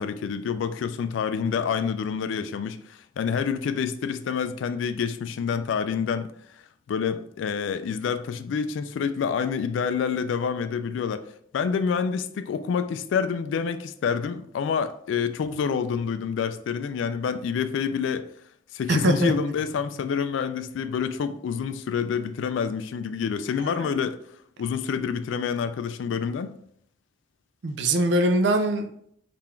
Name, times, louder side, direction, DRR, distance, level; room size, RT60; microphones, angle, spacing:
voice 1, 0.0-6.3 6.9-11.3 11.5-18.3 18.7-24.2 24.6-26.6, left 6 dB, 85° left, 0.3 m, -27 dB
voice 2, 18.9-19.3 23.6-23.9 27.6-28.9, right 1 dB, 65° right, 0.4 m, -23 dB
3.7 x 2.5 x 4.3 m
head